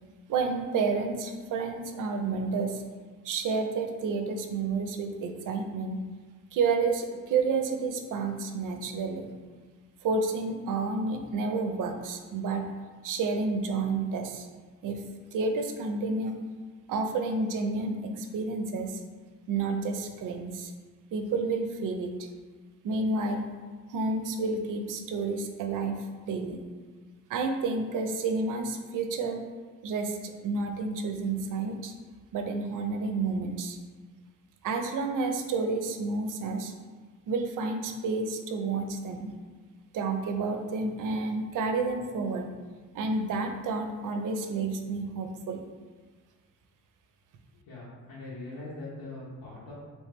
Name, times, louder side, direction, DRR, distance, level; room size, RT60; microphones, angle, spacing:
voice 1, 0.3-2.8 3.2-6.0 6.5-9.3 10.0-12.7 13.0-14.5 14.8-15.0 15.3-16.4 16.9-19.0 19.5-20.7 21.1-22.3 22.8-23.4 23.9-26.6 27.3-29.4 29.8-31.9 32.3-33.8 34.6-36.7 37.3-39.3 39.9-42.5 42.9-45.6, right 4 dB, 70° right, 5 dB, 0.5 m, -30 dB
voice 2, 47.5-49.7, left 2 dB, 85° left, -10 dB, 1.1 m, -42 dB
3.1 x 3.1 x 3.3 m, 1.4 s
cardioid pair, 125°, 33 cm